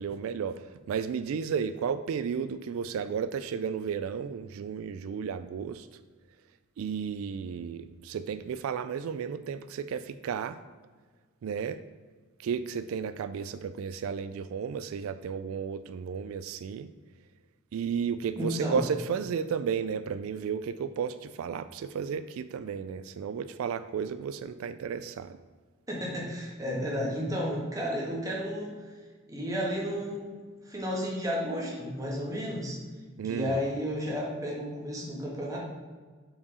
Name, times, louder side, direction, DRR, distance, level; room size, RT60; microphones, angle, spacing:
voice 1, 0.0-6.0 6.8-10.6 11.4-11.8 12.4-16.9 17.7-25.4 33.2-33.6, right 6 dB, 85° right, 11 dB, 0.3 m, -33 dB
voice 2, 18.3-18.8 25.9-28.7 29.3-30.2 30.6-32.8 33.3-35.6, equal, 15° right, -4 dB, 1.6 m, -32 dB
5.7 x 4.7 x 4.8 m, 1.5 s
head